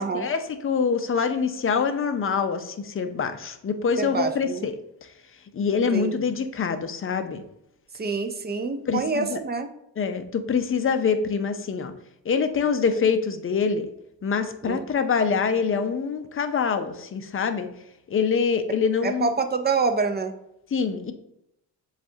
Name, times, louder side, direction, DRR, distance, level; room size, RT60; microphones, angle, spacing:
voice 1, 0.0-4.7 5.5-7.4 8.9-9.4 10.0-11.9 12.3-13.9 14.2-17.7 18.1-19.3 20.7-21.1, left 6 dB, 30° left, 8 dB, 0.5 m, -25 dB
voice 2, 4.0-4.7 5.7-6.1 8.0-9.7 14.6-14.9 19.0-20.3, right 4 dB, 25° right, 8 dB, 0.4 m, -26 dB
7.1 x 2.4 x 2.7 m, 0.79 s
cardioid pair, 85°, 43 cm